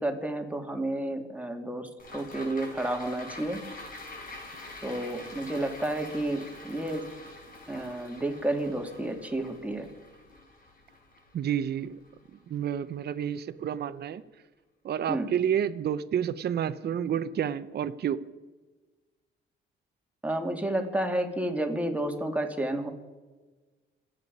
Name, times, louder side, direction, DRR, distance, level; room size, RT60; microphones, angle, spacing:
voice 1, 0.0-3.6 4.8-7.0 7.7-9.9 15.1-15.3 20.2-22.9, right 1 dB, 5° right, 3 dB, 2.6 m, -31 dB
sound 1, 2.0-12.5 12.9-13.0, left 2 dB, 45° left, 5.3 m, -46 dB
voice 2, 11.3-12.0 12.5-14.2 14.8-18.2, right 9 dB, 55° right, 12 dB, 0.7 m, -29 dB
27.5 x 9.1 x 5.4 m, 1.3 s
cardioid pair, 90°, 20 cm